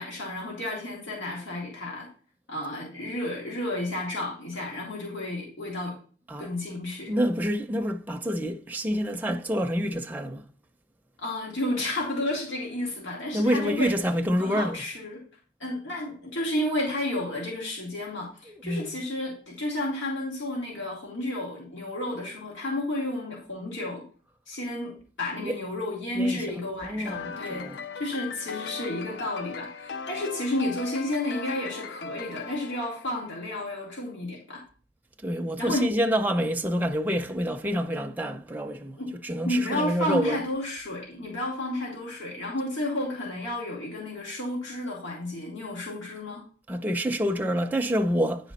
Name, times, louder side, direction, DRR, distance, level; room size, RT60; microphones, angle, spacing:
voice 1, 0.0-2.1 2.5-6.0 6.4-7.1 11.2-14.0 14.4-15.2 15.6-24.0 24.5-27.7 27.9-34.6 35.6-35.9 39.0-39.1 39.4-46.5, left 1 dB, 80° left, 2.5 m, -31 dB
voice 2, 7.1-10.4 13.3-14.8 18.5-19.0 25.4-25.6 26.1-26.4 26.8-27.8 35.2-40.4 46.7-48.5, equal, 10° right, 0.4 m, -27 dB
sound 1, 27.1-33.7, left 5 dB, 60° left, 0.4 m, -38 dB
9.6 x 5.0 x 4.1 m
head